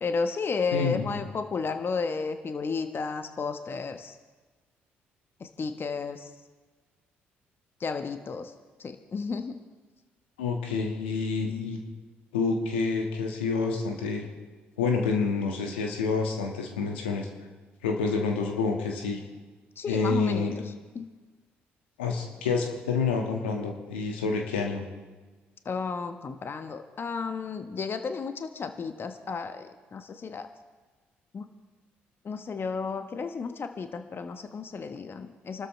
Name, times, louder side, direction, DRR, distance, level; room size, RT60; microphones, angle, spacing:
voice 1, 0.0-4.2 5.4-6.3 7.8-8.5 8.8-9.6 19.8-20.5 20.9-21.1 25.6-30.5 31.3-31.5 32.2-35.7, left 5 dB, 40° left, 8 dB, 1.1 m, -33 dB
voice 2, 0.7-1.2 10.4-11.8 12.3-14.3 14.8-17.3 17.8-19.2 19.9-20.5 22.0-24.9, left 4 dB, 85° left, 2 dB, 1.7 m, -28 dB
27.0 x 13.0 x 3.2 m, 1.3 s
hypercardioid pair, 50°, 6 cm